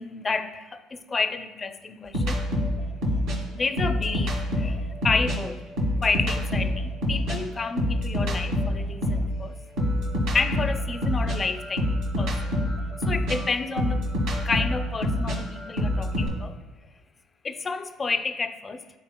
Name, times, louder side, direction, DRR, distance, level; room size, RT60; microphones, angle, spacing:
voice 1, 0.0-2.4 3.5-5.6 6.0-9.5 10.3-11.9 12.2-12.6 13.1-14.1 14.4-16.6 17.4-18.8, left 4 dB, 30° left, 9 dB, 0.5 m, -30 dB
sound 1, 2.1-5.4 5.7-9.3 9.8-16.3, left 1 dB, 80° right, 1.9 m, -26 dB
12.0 x 4.2 x 2.2 m, 1.2 s
supercardioid pair, 75°, 0 cm